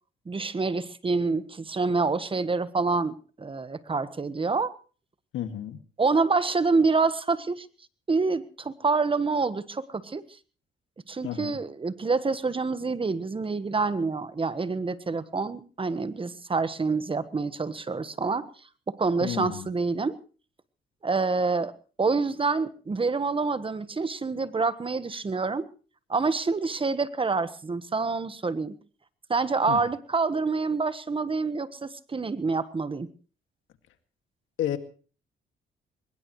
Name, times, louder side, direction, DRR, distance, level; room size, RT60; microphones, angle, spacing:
voice 1, 0.3-4.7 6.0-7.7 8.1-10.2 11.1-18.5 18.9-20.1 21.0-21.7 22.0-25.7 26.1-28.7 29.3-33.1, right 4 dB, 25° right, 14 dB, 1.3 m, -27 dB
voice 2, 5.3-5.8 11.2-11.6 19.2-19.7 29.7-29.8 34.6-34.8, left 11 dB, 85° left, 8 dB, 2.1 m, -31 dB
22.0 x 20.5 x 3.2 m, 0.38 s
cardioid pair, 90°, 20 cm